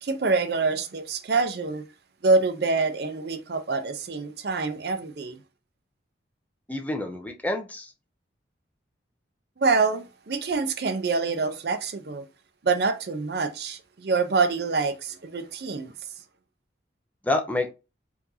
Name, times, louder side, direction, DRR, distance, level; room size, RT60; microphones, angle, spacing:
voice 1, 0.0-1.8 2.2-5.4 9.6-12.3 12.6-15.9, right 4 dB, 55° right, 0.5 m, -26 dB
voice 2, 6.7-7.9 17.2-17.7, left 2 dB, 10° left, 0.4 m, -28 dB
4.6 x 2.5 x 2.7 m
head